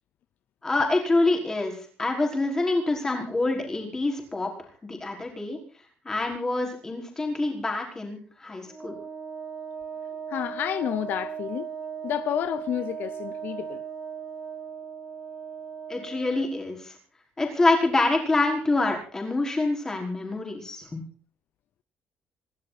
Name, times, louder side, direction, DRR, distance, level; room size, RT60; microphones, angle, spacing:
voice 1, 0.6-4.5 4.8-5.6 6.0-8.9 15.9-16.9 17.4-21.0, left 2 dB, 15° left, 5.1 m, -26 dB
Wind instrument woodwind instrument, 8.7-16.5, right 7 dB, 15° right, 2.5 m, -37 dB
voice 2, 10.3-11.7 12.0-13.8, left 11 dB, 60° left, 0.7 m, -30 dB
27.0 x 12.5 x 4.3 m
cardioid pair, 165°, 4 cm